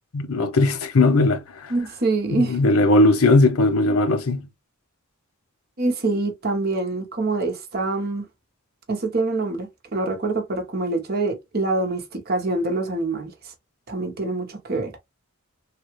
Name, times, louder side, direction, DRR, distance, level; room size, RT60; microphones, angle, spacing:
voice 1, 0.1-1.7 2.3-4.5, left 2 dB, 80° left, 0.7 m, -18 dB
voice 2, 1.7-2.6 5.8-8.2 8.9-13.3 13.9-14.9, right 2 dB, 45° right, 0.9 m, -25 dB
3.3 x 2.3 x 3.0 m
head